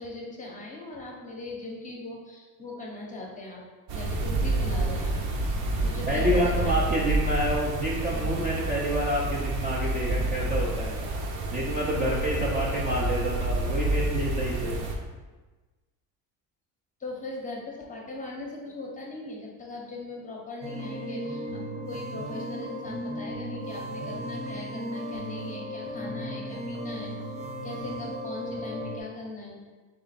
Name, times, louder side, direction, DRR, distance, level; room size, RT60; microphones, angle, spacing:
voice 1, 0.0-3.6 3.9-5.2 5.8-6.8 17.0-27.2 27.6-29.6, left 2 dB, 20° left, -1 dB, 0.7 m, -39 dB
sound 1, 3.9-15.0, right 1 dB, 60° right, 0.8 m, -28 dB
voice 2, 5.7-11.0 11.5-14.8, right 1 dB, 20° right, -5 dB, 0.4 m, -28 dB
sound 2, 20.6-29.0, equal, 80° right, 1.3 m, -35 dB
3.8 x 3.4 x 4.0 m, 1.3 s
cardioid pair, 145°, 42 cm